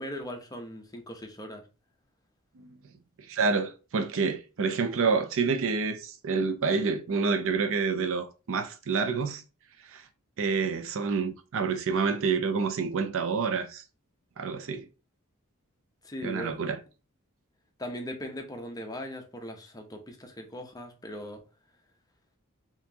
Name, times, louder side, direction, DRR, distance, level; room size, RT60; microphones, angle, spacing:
voice 1, 0.0-1.6 16.0-16.6 17.8-21.4, equal, 15° left, 0.7 m, -39 dB
voice 2, 3.3-9.4 9.9-10.0 10.4-13.8 14.4-14.9 16.2-16.8, right 5 dB, 65° right, 0.5 m, -28 dB
4.3 x 2.9 x 2.7 m
head